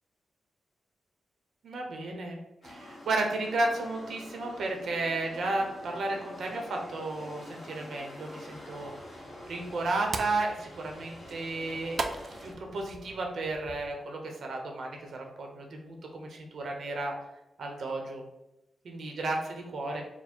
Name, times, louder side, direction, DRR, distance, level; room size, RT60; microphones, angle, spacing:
voice 1, 1.6-2.4 2.6-8.9 9.5-12.0 12.4-17.1 17.6-18.2 18.8-20.0, right 2 dB, 70° right, 2 dB, 0.7 m, -33 dB
sound 1, 2.6-12.5, left 1 dB, 40° left, 1.5 m, -47 dB
sound 2, 8.5-13.9, right 3 dB, 50° right, 0.4 m, -41 dB
4.4 x 2.1 x 4.3 m, 0.92 s
wide cardioid pair, 135°, 0 cm